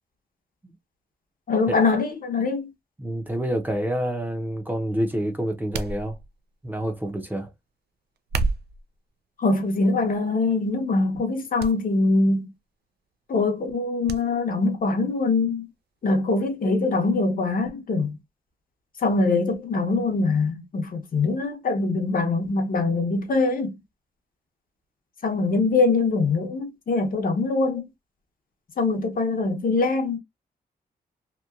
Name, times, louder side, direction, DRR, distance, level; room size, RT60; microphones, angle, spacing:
voice 1, 1.5-2.7 9.4-12.5 13.3-15.7 16.0-18.2 19.0-23.8 25.2-27.9 28.8-30.2, left 3 dB, 55° left, 0.7 m, -23 dB
voice 2, 3.0-6.2 6.6-7.5, right 1 dB, 10° right, 0.6 m, -28 dB
sound 1, 5.7-6.5 8.2-8.9 9.7-10.0 10.5-10.6 11.6-11.8 12.1-12.2 14.1-14.2 14.6-14.7, right 3 dB, 75° right, 0.4 m, -29 dB
2.9 x 2.1 x 2.3 m
wide cardioid pair, 100°, 17 cm